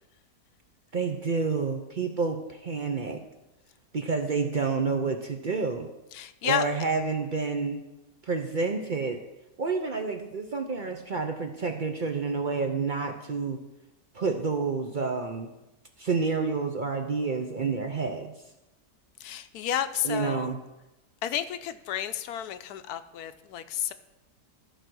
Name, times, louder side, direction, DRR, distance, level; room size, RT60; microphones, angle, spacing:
voice 1, 0.9-3.2 3.9-5.9 6.4-7.8 8.2-9.2 9.6-13.6 14.1-15.5 16.0-18.3 20.0-20.6, right 4 dB, 65° right, 5 dB, 0.4 m, -29 dB
voice 2, 6.1-6.6 19.2-20.5 21.2-23.9, left 11 dB, 75° left, 11 dB, 1.1 m, -31 dB
13.5 x 4.8 x 6.1 m, 0.97 s
omnidirectional pair, 1.8 m